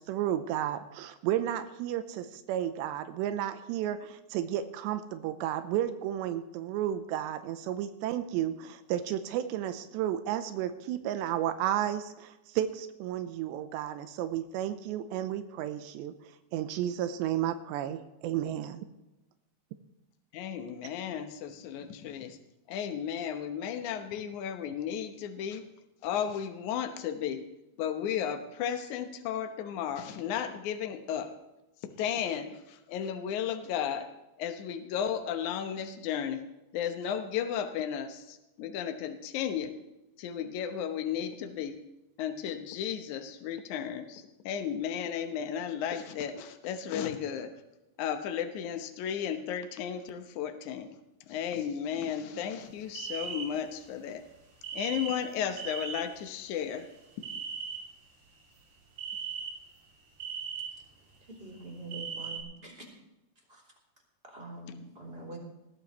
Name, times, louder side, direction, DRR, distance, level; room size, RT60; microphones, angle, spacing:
voice 1, 0.0-16.1 16.5-18.9, right 11 dB, 90° right, 10 dB, 3.0 m, -32 dB
voice 2, 20.3-22.4 22.7-25.6 26.0-27.4 27.8-31.3 31.8-34.1 34.4-36.4 36.7-39.7 40.2-41.8 42.2-47.5 48.0-50.9 51.2-54.2 54.7-56.9, left 8 dB, 90° left, 7 dB, 1.7 m, -34 dB
sound 1, 52.9-53.7 54.6-56.0 56.4-57.8 58.4-58.6 59.0-59.8 60.2-60.7 61.4-62.4, right 6 dB, 65° right, 4.7 m, -38 dB
voice 3, 61.3-63.0 63.5-63.6 64.2-65.4, right 2 dB, 15° right, -2 dB, 2.9 m, -44 dB
20.0 x 15.0 x 3.1 m, 0.95 s
omnidirectional pair, 5.0 m